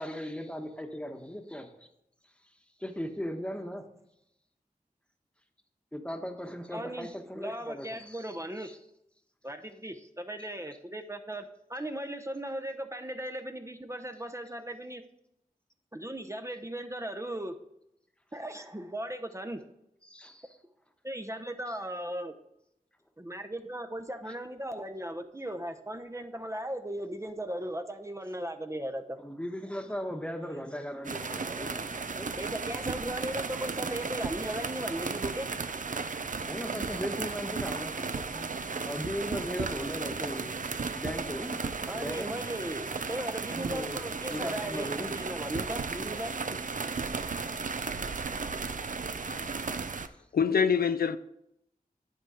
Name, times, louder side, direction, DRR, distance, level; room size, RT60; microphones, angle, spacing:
voice 1, 0.0-1.7 2.8-3.8 5.9-8.8 20.0-20.5 21.7-21.8 29.2-32.6 36.5-38.5 38.8-40.6 40.9-41.6 41.9-42.3 43.5-44.0 44.3-45.1, equal, 5° left, 1.1 m, -38 dB
voice 2, 6.7-7.1 7.3-8.7 9.4-15.0 15.9-17.6 18.3-19.6 21.0-22.3 23.2-29.2 32.4-35.5 41.9-46.3, right 1 dB, 20° right, 0.7 m, -37 dB
sound 1, 31.0-50.1, right 4 dB, 60° right, 0.5 m, -35 dB
voice 3, 49.2-49.7 50.3-51.2, left 6 dB, 80° left, 0.4 m, -26 dB
10.5 x 4.5 x 4.9 m
wide cardioid pair, 45°, 16 cm